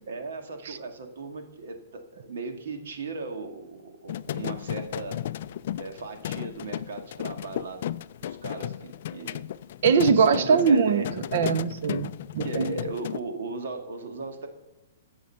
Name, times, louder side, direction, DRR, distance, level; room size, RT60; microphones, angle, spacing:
voice 1, 0.1-5.2 5.8-7.9 8.2-9.4 10.1-11.1 12.4-14.5, right 3 dB, 65° right, 6 dB, 1.7 m, -37 dB
sound 1, 4.1-13.2, left 11 dB, 45° left, 0.3 m, -34 dB
voice 2, 9.8-11.0 11.3-12.7, right 6 dB, 45° right, 13 dB, 0.6 m, -22 dB
15.0 x 6.3 x 5.6 m, 1.1 s
hypercardioid pair, 175°, 0 cm